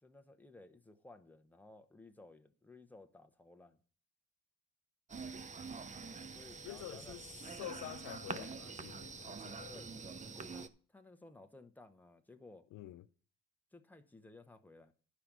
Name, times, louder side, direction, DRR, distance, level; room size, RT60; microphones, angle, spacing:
voice 1, 0.0-3.8 6.3-7.2 9.7-10.1 10.3-12.7 13.7-14.9, left 2 dB, 5° left, 1.0 m, -57 dB
sound 1, 5.1-10.7, right 4 dB, 25° right, 0.6 m, -46 dB
voice 2, 6.6-7.3 7.6-9.8 12.7-13.0, left 14 dB, 85° left, 0.6 m, -48 dB
11.5 x 5.0 x 6.1 m
cardioid pair, 90°, 30 cm